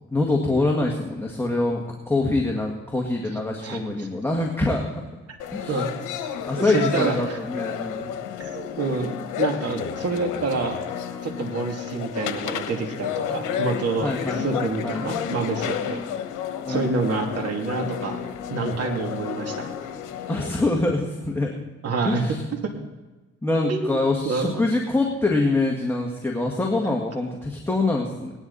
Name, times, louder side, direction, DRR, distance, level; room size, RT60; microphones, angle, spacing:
voice 1, 0.1-5.0 5.5-5.9 6.5-8.2 14.0-15.1 15.9-16.1 16.7-17.0 20.3-21.6 22.0-22.4 23.4-28.3, left 2 dB, 10° left, 0 dB, 1.8 m, -25 dB
voice 2, 3.6-4.1 5.7-5.9 6.5-7.4 8.4-10.8 11.2-16.0 16.7-18.2 18.5-19.7 21.8-22.4 23.7-24.0 24.2-24.6, right 4 dB, 55° right, 1 dB, 2.6 m, -27 dB
sound 1, 5.4-20.6, left 8 dB, 90° left, 1.1 m, -31 dB
18.5 x 11.0 x 4.1 m, 1.2 s
cardioid pair, 90°, 30 cm